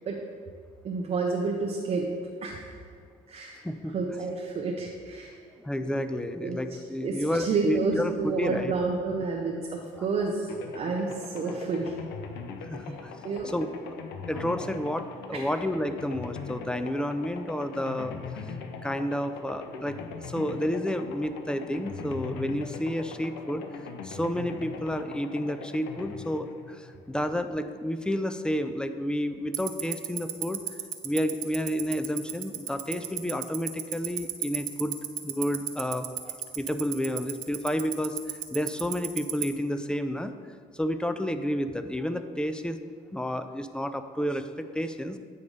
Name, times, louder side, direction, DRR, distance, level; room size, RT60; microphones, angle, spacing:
voice 1, 0.8-2.1 2.4-2.7 3.3-3.6 3.9-5.3 5.8-5.9 6.4-6.6 7.0-10.5 10.7-11.9 13.2-13.6 15.3-15.4, right 4 dB, 35° right, 0 dB, 0.7 m, -30 dB
voice 2, 5.6-8.7 12.7-13.1 13.4-13.7 14.3-18.4 18.8-20.0 20.2-23.6 24.0-30.6 31.0-35.0 35.2-40.3 40.7-42.8 43.1-45.2, equal, 5° left, 9 dB, 0.3 m, -30 dB
sound 1, 10.5-27.4, left 5 dB, 85° left, 0.7 m, -41 dB
Tick-tock, 29.5-39.4, right 16 dB, 75° right, 0.6 m, -29 dB
8.4 x 3.3 x 5.3 m, 2.1 s
cardioid pair, 110°, 17 cm